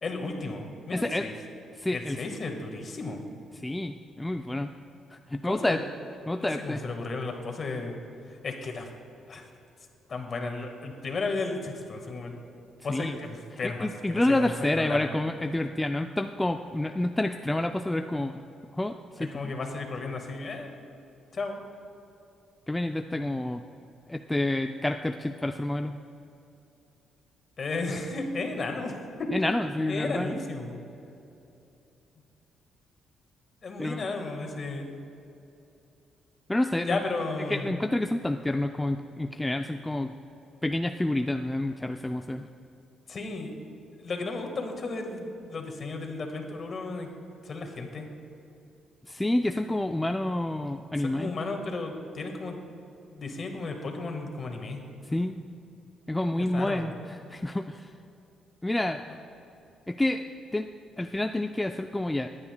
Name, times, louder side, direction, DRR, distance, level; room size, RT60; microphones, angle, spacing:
voice 1, 0.0-1.3 1.9-3.3 5.4-5.8 6.4-8.0 8.4-8.9 9.3-9.5 10.1-12.4 12.8-15.1 19.2-20.8 21.3-21.6 27.6-29.6 29.9-30.8 33.6-34.8 36.8-37.8 43.1-43.5 44.0-47.1 47.4-48.1 51.0-52.6 53.1-54.8 55.1-55.2 56.4-57.2, left 3 dB, 45° left, 4 dB, 1.5 m, -34 dB
voice 2, 0.9-1.2 1.8-2.2 3.6-4.7 5.1-5.8 6.3-6.8 12.9-13.2 13.8-18.4 18.7-19.5 22.7-23.6 24.1-25.9 29.3-30.4 33.8-34.0 36.5-37.0 37.5-40.1 40.6-42.5 49.1-51.3 55.1-55.4 56.1-56.9 57.3-57.9 58.6-59.0 59.9-60.2 60.5-60.7 61.0-62.3, left 1 dB, 10° left, 6 dB, 0.3 m, -28 dB
20.5 x 9.7 x 2.2 m, 2.8 s
cardioid pair, 90°, 0 cm